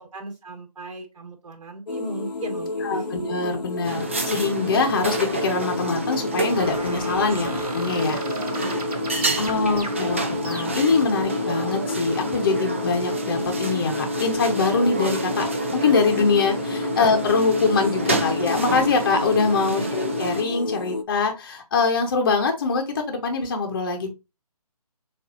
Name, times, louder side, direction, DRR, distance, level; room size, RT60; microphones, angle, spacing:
voice 1, 0.0-3.1 7.3-7.5 8.6-8.9 9.2-10.0 16.9-17.0 19.6-19.9, right 2 dB, 55° right, 1 dB, 2.3 m, -38 dB
sound 1, 1.9-21.0, left 3 dB, 85° left, 0.8 m, -31 dB
voice 2, 2.8-8.2 9.4-15.5 15.7-24.1, left 4 dB, 35° left, 3 dB, 0.9 m, -23 dB
sound 2, 3.8-20.4, right 2 dB, 20° right, 0.4 m, -29 dB
sound 3, 6.5-11.0, right 2 dB, 70° right, 2.0 m, -37 dB
7.0 x 2.6 x 2.5 m, 0.25 s
hypercardioid pair, 165°, 20 cm